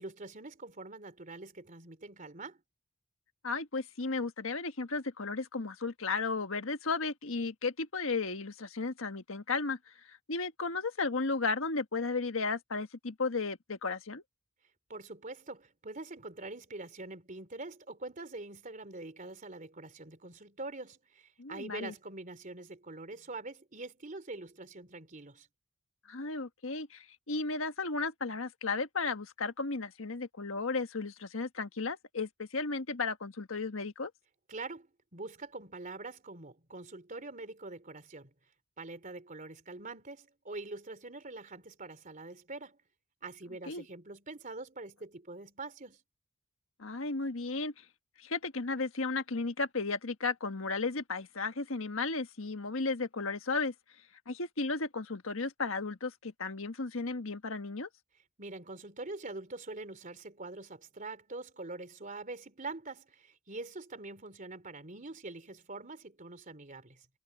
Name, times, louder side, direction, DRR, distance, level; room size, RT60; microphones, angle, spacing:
voice 1, 0.0-2.6 14.9-25.5 34.5-38.3 38.8-42.8 43.2-46.0 58.4-67.1, right 2 dB, 40° right, 3.3 m, -44 dB
voice 2, 3.4-14.2 21.4-21.9 26.1-34.1 43.7-43.8 46.8-47.8 48.2-53.7 54.3-57.9, left 3 dB, 75° left, 1.5 m, -34 dB
head